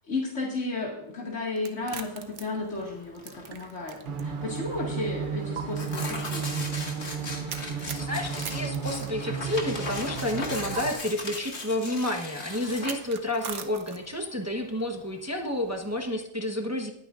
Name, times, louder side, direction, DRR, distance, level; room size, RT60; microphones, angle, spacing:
voice 1, 0.1-3.2 3.5-6.6, left 3 dB, 85° left, -3 dB, 2.3 m, -33 dB
sound 1, 1.6-4.2 4.6-4.7 5.6-5.7 7.5-9.6 10.8-10.9 12.7-14.2, right 7 dB, 80° right, 1.2 m, -40 dB
Tearing, 1.8-16.1, left 2 dB, 65° left, 2.1 m, -39 dB
sound 2, 4.0-10.9, right 6 dB, 50° right, 0.9 m, -33 dB
voice 2, 7.9-16.9, left 1 dB, 15° right, 3 dB, 1.0 m, -30 dB
21.0 x 9.2 x 2.5 m, 0.77 s
omnidirectional pair, 1.2 m